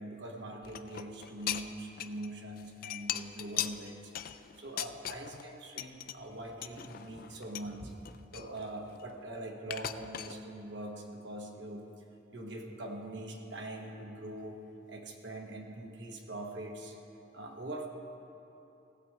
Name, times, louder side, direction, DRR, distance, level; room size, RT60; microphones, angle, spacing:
voice 1, 0.0-7.9 8.3-11.8 12.3-14.6 14.9-17.0 17.3-17.9, right 1 dB, 60° right, 1 dB, 1.3 m, -43 dB
sound 1, 0.6-2.3 2.6-5.5 5.8-6.1 6.6-7.7 8.0-9.2 9.7-10.3, left 11 dB, 45° left, 0.3 m, -39 dB
16.5 x 7.8 x 4.7 m, 3.0 s
head